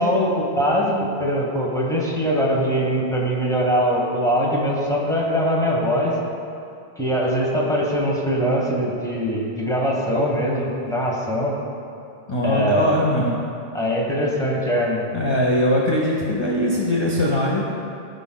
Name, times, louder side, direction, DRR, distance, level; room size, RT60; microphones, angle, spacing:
voice 1, 0.0-6.1 7.0-11.6 12.4-13.0 13.7-15.1, equal, 5° left, -3 dB, 1.1 m, -22 dB
voice 2, 12.3-13.4 15.1-17.6, left 1 dB, 30° left, -3 dB, 0.7 m, -21 dB
15.0 x 5.1 x 2.2 m, 2.6 s
omnidirectional pair, 1.1 m